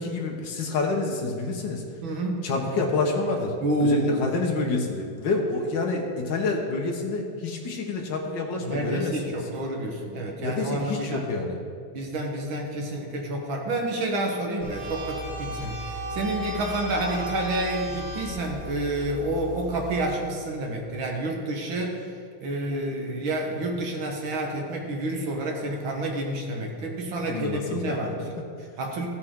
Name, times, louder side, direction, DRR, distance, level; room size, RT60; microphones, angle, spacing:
voice 1, 0.0-1.8 2.4-3.5 3.8-9.4 10.4-11.6 27.3-28.4, left 3 dB, 65° left, 1 dB, 1.1 m, -28 dB
voice 2, 2.0-2.5 3.6-4.2 8.6-11.2 11.9-22.1 22.4-29.1, right 1 dB, 60° right, 1 dB, 1.3 m, -29 dB
sound 1, 14.6-20.0, equal, 5° right, 1.8 m, -35 dB
14.0 x 8.9 x 3.7 m, 2.2 s
omnidirectional pair, 3.6 m